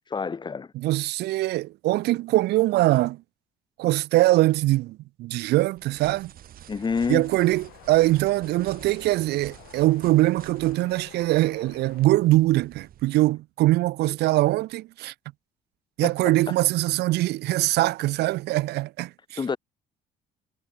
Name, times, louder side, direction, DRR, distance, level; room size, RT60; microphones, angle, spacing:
voice 1, 0.1-0.7 6.7-7.3 16.0-16.1 16.5-16.6 19.4-19.6, left 5 dB, 25° left, 1.2 m, -28 dB
voice 2, 0.7-3.2 3.8-6.3 7.1-15.1 16.0-19.1, right 17 dB, 80° right, 1.0 m, -22 dB
sound 1, 5.8-13.0, right 11 dB, 60° right, 2.2 m, -49 dB
sound 2, 6.8-12.1, left 20 dB, 90° left, 3.3 m, -50 dB
cardioid pair, 110°, 17 cm